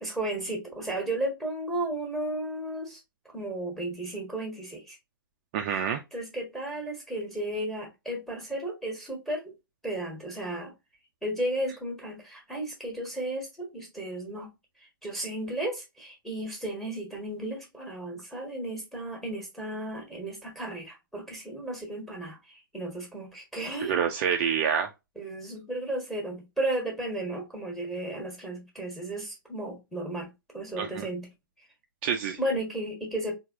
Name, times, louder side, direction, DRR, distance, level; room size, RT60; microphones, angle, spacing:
voice 1, 0.0-3.0 3.2-5.0 5.7-9.5 9.8-10.7 11.2-14.5 15.0-23.9 25.1-31.3 32.4-33.4, right 1 dB, ahead, 1.5 m, -34 dB
voice 2, 5.5-6.0 23.8-24.9 30.8-31.1 32.0-32.4, right 7 dB, 35° right, 0.5 m, -27 dB
4.5 x 2.8 x 2.7 m
figure-of-eight pair, 120°, 12 cm